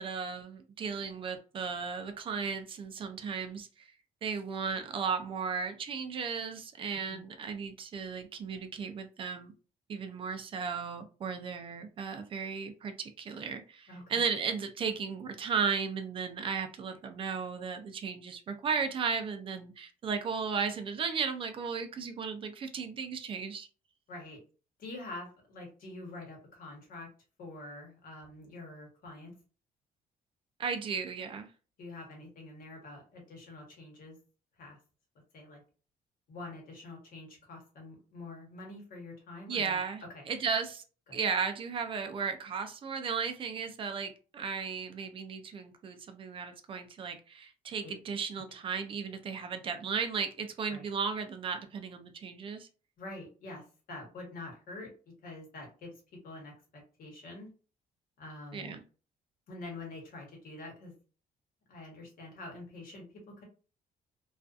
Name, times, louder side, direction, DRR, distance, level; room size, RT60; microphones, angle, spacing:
voice 1, 0.0-3.9 4.2-9.5 9.9-23.7 30.6-31.5 39.5-40.8 41.1-52.7 58.5-58.8, right 6 dB, 35° right, 7 dB, 0.4 m, -35 dB
voice 2, 13.9-14.2 24.1-24.4 24.8-27.1 27.4-29.3 31.8-34.2 34.6-34.8 35.3-35.6 36.3-39.8 40.1-40.2 41.1-41.2 47.8-47.9 50.7-50.9 53.0-54.9 55.2-55.9 56.2-56.5 57.0-57.5 58.2-58.8 59.5-60.9 61.7-63.0, left 2 dB, 65° left, 0 dB, 1.1 m, -46 dB
2.5 x 2.3 x 2.4 m, 0.36 s
cardioid pair, 165°, 16 cm